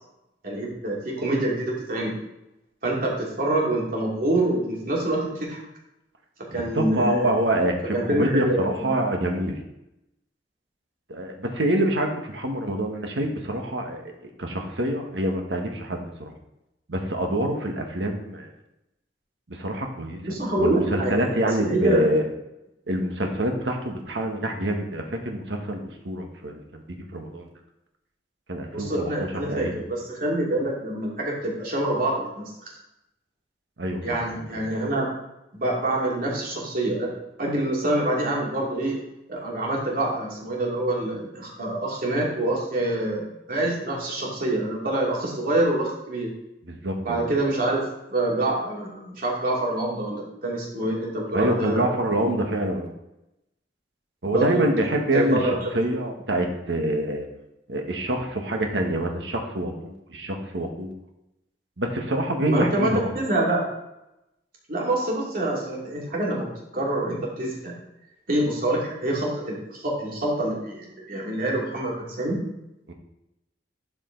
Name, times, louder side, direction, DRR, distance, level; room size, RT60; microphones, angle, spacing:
voice 1, 0.4-2.1 2.8-5.6 6.5-7.4 7.9-8.9 20.2-22.0 28.7-32.7 34.0-35.1 35.5-37.1 37.4-39.0 39.3-46.3 47.0-47.8 48.1-52.1 54.2-54.6 55.1-55.5 62.4-63.6 64.7-66.5 66.7-67.7 68.3-72.4, right 1 dB, 55° right, -3 dB, 2.7 m, -26 dB
voice 2, 6.5-9.5 11.1-16.3 16.9-18.5 19.5-20.2 20.6-22.2 22.9-27.5 28.5-29.1 29.5-29.7 33.8-34.7 46.7-47.2 51.3-52.9 54.2-57.3 57.7-60.9 61.8-63.1 72.9-73.0, right 1 dB, 90° right, 3 dB, 1.4 m, -26 dB
12.0 x 5.0 x 3.9 m, 0.90 s
head